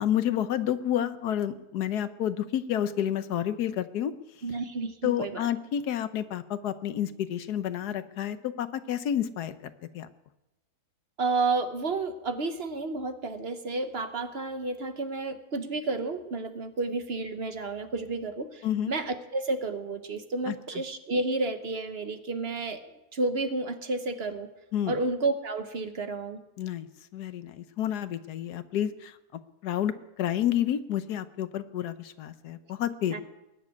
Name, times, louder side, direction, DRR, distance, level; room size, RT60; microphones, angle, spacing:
voice 1, 0.0-4.1 5.0-10.1 18.6-18.9 20.5-20.6 24.7-25.0 26.6-26.9 27.1-29.2 29.6-33.2, left 10 dB, 85° left, 12 dB, 1.4 m, -30 dB
voice 2, 4.4-5.4 11.2-22.8 23.1-24.5 24.9-26.4 33.1-33.2, right 3 dB, 45° right, 8 dB, 1.2 m, -31 dB
20.5 x 7.5 x 9.4 m, 0.96 s
omnidirectional pair, 1.7 m